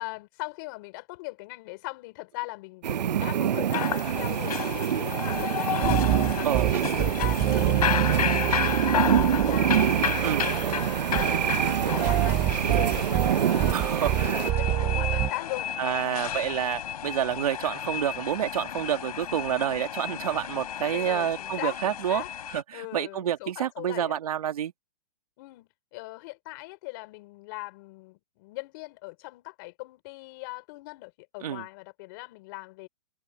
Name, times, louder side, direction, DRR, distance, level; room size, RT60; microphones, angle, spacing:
voice 1, 0.0-6.0 6.3-9.8 10.0-16.4 20.8-22.3 22.7-24.2 25.4-32.9, left 24 dB, 30° left, 5.2 m, -40 dB
sound 1, 2.8-14.5, right 9 dB, 80° right, 0.9 m, -26 dB
sound 2, 3.7-22.6, left 9 dB, 65° left, 5.9 m, -33 dB
sound 3, 5.8-15.3, right 14 dB, 10° right, 0.6 m, -28 dB
voice 2, 13.7-14.5 15.8-22.2 22.5-24.7 31.4-31.6, right 10 dB, 60° right, 2.6 m, -28 dB
hypercardioid pair, 170°, 21 cm